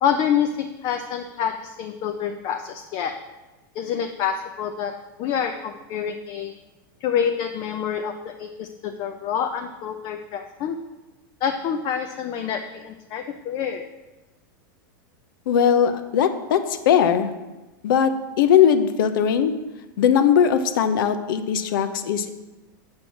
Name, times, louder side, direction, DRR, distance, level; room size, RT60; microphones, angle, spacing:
voice 1, 0.0-3.1 3.7-4.9 5.2-6.5 7.0-10.8 11.4-13.8, left 8 dB, 45° left, 6 dB, 0.7 m, -27 dB
voice 2, 15.5-17.3 17.8-19.5 20.0-22.3, left 8 dB, 75° left, 10 dB, 0.8 m, -19 dB
7.8 x 6.1 x 5.9 m, 1.1 s
hypercardioid pair, 125°, 11 cm